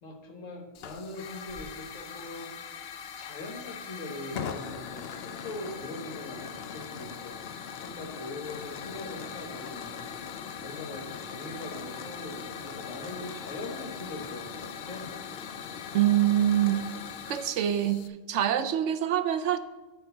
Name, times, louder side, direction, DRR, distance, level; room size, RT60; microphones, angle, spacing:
voice 1, 0.0-2.6 3.2-10.2 10.6-15.1, left 2 dB, 75° left, 3 dB, 1.8 m, -41 dB
Hiss / Fire, 0.7-18.1, left 7 dB, 60° left, 0.8 m, -40 dB
voice 2, 15.9-16.9 17.3-18.0 18.3-19.6, right 11 dB, 70° right, 11 dB, 0.9 m, -25 dB
8.0 x 4.5 x 6.8 m, 1.2 s
omnidirectional pair, 1.3 m